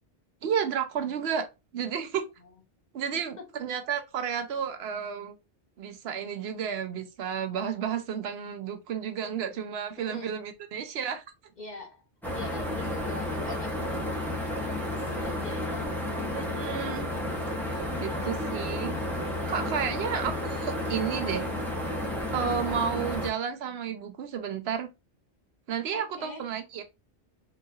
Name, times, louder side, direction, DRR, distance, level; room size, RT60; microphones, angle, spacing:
voice 1, 0.4-1.5 1.7-2.3 2.9-5.4 5.8-11.2 16.3-17.1 17.9-18.9 19.5-21.5 22.3-24.9 25.7-26.8, right 8 dB, 70° right, 0.9 m, -32 dB
voice 2, 3.1-3.5 9.2-9.6 10.0-10.4 11.6-12.0 12.3-16.5 17.9-18.4 20.0-20.4 25.9-26.5, left 3 dB, 45° left, 0.8 m, -44 dB
sound 1, 12.2-23.3, left 1 dB, ahead, 0.8 m, -32 dB
3.9 x 2.5 x 2.7 m
omnidirectional pair, 1.1 m